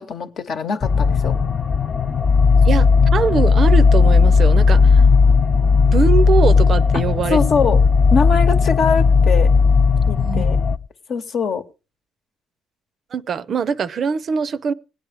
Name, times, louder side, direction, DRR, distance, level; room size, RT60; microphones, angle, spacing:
voice 1, 0.0-1.4 7.3-7.8 8.1-9.5 10.1-10.6 11.1-11.6, left 5 dB, 65° left, 1.0 m, -22 dB
sound 1, 0.8-10.8, left 5 dB, 40° left, 0.5 m, -15 dB
voice 2, 3.1-5.1 5.9-7.4 10.2-10.4 13.1-14.7, right 6 dB, 55° right, 0.5 m, -22 dB
17.0 x 9.5 x 3.5 m
cardioid pair, 90°, 0 cm